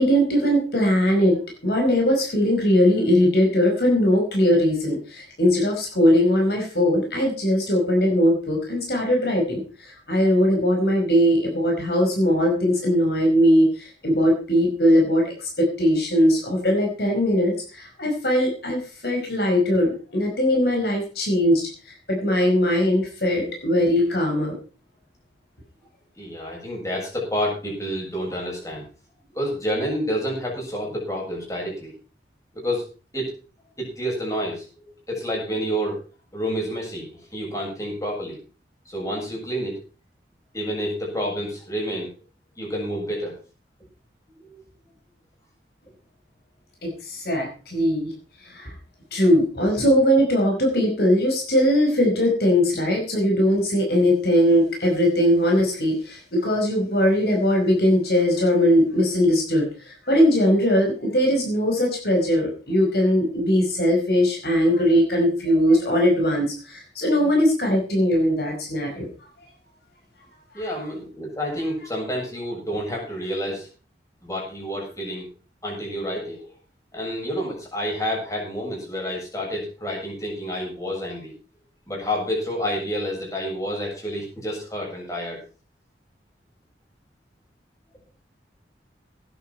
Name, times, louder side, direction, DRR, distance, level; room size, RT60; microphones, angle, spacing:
voice 1, 0.0-24.6 46.8-48.1 48.4-48.7 49.1-69.1, equal, 60° left, 1 dB, 4.9 m, -20 dB
voice 2, 26.2-28.9 29.3-31.9 32.5-32.9 33.1-33.3 33.8-34.6 35.1-36.0 36.3-38.4 38.9-39.8 40.5-42.1 42.6-43.4 44.4-44.6 70.5-73.7 74.2-75.3 75.6-76.5 76.9-81.3 81.9-85.4, equal, 20° left, -2 dB, 7.6 m, -29 dB
17.5 x 11.0 x 4.5 m, 0.36 s
head